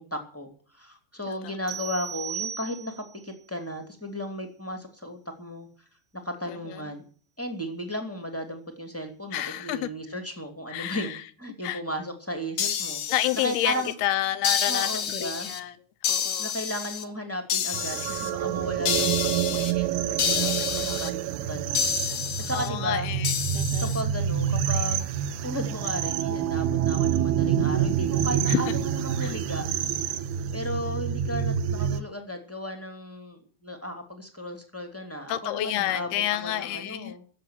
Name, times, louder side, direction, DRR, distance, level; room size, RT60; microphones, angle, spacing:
voice 1, 0.0-5.7 6.1-7.0 7.4-13.0 13.4-13.9 14.6-15.5 16.4-21.9 22.4-23.1 23.8-25.1 25.4-29.7 30.5-37.2, equal, 5° left, 1.3 m, -35 dB
sound 1, 1.7-3.2, right 8 dB, 40° right, 1.4 m, -36 dB
voice 2, 6.5-6.8 9.3-9.9 10.7-11.2 11.6-11.8 13.1-15.7 16.1-16.5 22.5-23.9 28.5-28.7 29.2-29.4 35.3-37.2, left 13 dB, 75° left, 2.6 m, -29 dB
sound 2, 12.6-13.9 14.4-15.6 16.0-17.0 17.5-18.3 18.9-19.7 20.2-21.1 21.8-22.7 23.2-24.0, left 8 dB, 60° left, 1.8 m, -29 dB
sound 3, 17.7-32.0, right 9 dB, 75° right, 2.6 m, -27 dB
16.0 x 7.7 x 9.2 m
omnidirectional pair, 5.1 m